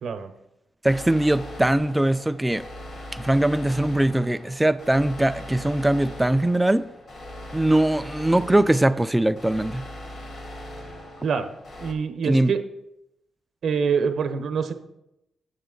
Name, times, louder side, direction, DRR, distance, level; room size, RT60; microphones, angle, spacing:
sound 1, 0.8-11.9, left 1 dB, 45° left, 1.1 m, -40 dB
voice 1, 0.8-2.7 3.1-6.8 7.5-9.8 12.3-12.5, right 1 dB, 10° right, 0.3 m, -21 dB
voice 2, 11.8-12.6 13.6-14.7, right 6 dB, 65° right, 0.7 m, -25 dB
8.0 x 7.2 x 3.8 m
cardioid pair, 125°, 0 cm